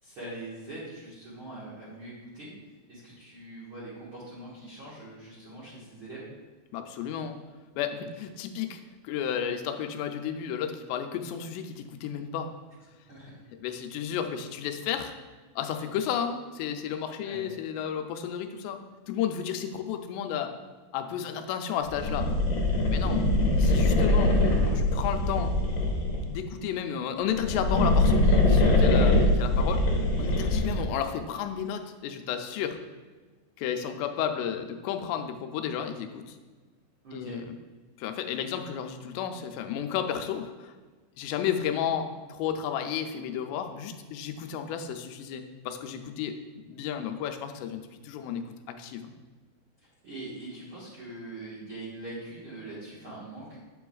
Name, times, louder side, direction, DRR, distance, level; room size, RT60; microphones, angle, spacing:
voice 1, 0.0-2.5 2.9-6.3 13.1-13.3 17.2-17.4 22.9-23.2 37.0-37.4 49.8-53.6, right 2 dB, 75° right, -8 dB, 1.2 m, -42 dB
voice 2, 6.7-7.4 7.8-12.5 13.6-15.1 15.6-18.8 19.1-20.5 20.9-22.3 22.9-23.2 23.6-24.3 24.7-25.5 26.2-29.8 30.2-32.8 33.6-36.4 37.1-37.6 38.0-40.7 41.2-49.1, left 8 dB, 90° left, 6 dB, 2.7 m, -32 dB
sound 1, 21.9-26.4 27.3-30.9, left 2 dB, 70° left, 2.1 m, -23 dB
8.8 x 7.6 x 2.3 m, 1.4 s
omnidirectional pair, 4.8 m